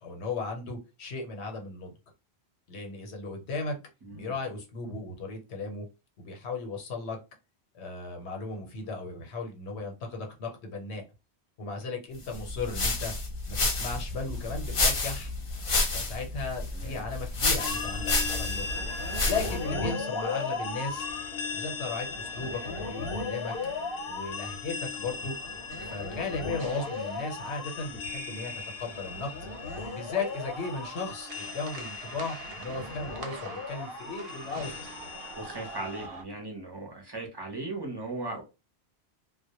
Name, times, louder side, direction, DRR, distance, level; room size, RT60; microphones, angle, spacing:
voice 1, 0.0-2.0 2.7-3.8 4.1-5.9 6.2-7.2 7.7-11.0 11.6-13.1 13.5-15.3 15.9-18.7 19.2-21.1 21.5-23.6 24.1-25.4 25.8-28.5 28.8-29.3 29.9-35.1, left 3 dB, 85° left, 2 dB, 1.0 m, -36 dB
voice 2, 4.0-4.4 16.7-17.0 34.4-34.5 35.4-38.4, right 2 dB, 30° right, 0 dB, 0.5 m, -38 dB
sound 1, 12.3-19.7, left 3 dB, 45° left, 0.5 m, -30 dB
sound 2, 17.6-36.1, left 4 dB, 65° left, 0.8 m, -36 dB
sound 3, 17.9-36.2, right 4 dB, 65° right, 0.7 m, -47 dB
2.1 x 2.1 x 2.9 m, 0.27 s
omnidirectional pair, 1.1 m